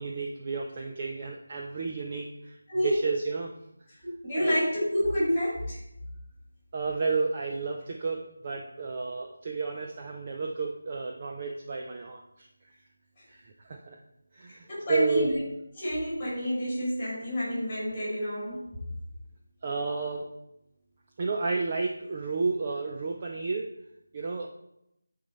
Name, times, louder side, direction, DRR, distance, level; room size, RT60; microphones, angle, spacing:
voice 1, 0.0-3.5 4.4-4.6 6.7-12.5 13.3-14.0 14.3-15.3 19.6-20.3 21.2-23.7 24.1-24.5, right 4 dB, 20° right, 1 dB, 0.3 m, -32 dB
voice 2, 4.0-5.8 14.5-15.4 15.8-18.7, equal, 10° left, -8 dB, 2.4 m, -29 dB
9.3 x 3.9 x 4.2 m, 0.82 s
figure-of-eight pair, 180°, 0 cm